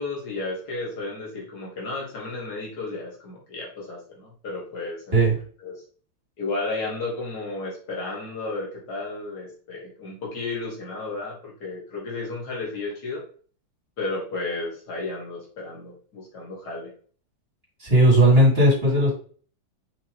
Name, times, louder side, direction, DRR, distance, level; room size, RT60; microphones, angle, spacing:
voice 1, 0.0-5.2 5.6-5.8 6.4-13.2 14.0-16.9, left 3 dB, 45° left, -4 dB, 2.9 m, -33 dB
voice 2, 17.8-19.1, right 1 dB, 25° right, -4 dB, 3.8 m, -16 dB
6.0 x 5.8 x 3.2 m, 0.43 s
omnidirectional pair, 2.4 m